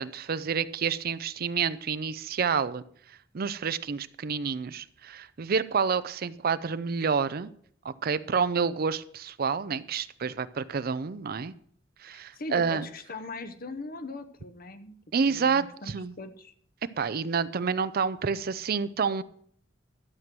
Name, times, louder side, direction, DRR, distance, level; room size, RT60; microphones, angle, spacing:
voice 1, 0.0-2.8 3.3-7.5 7.8-11.5 12.0-12.9 15.1-16.1 17.0-19.2, right 5 dB, 50° right, 15 dB, 0.5 m, -29 dB
voice 2, 12.1-14.9 15.3-16.5, left 2 dB, 50° left, 10 dB, 1.0 m, -40 dB
12.5 x 7.6 x 6.1 m, 0.63 s
head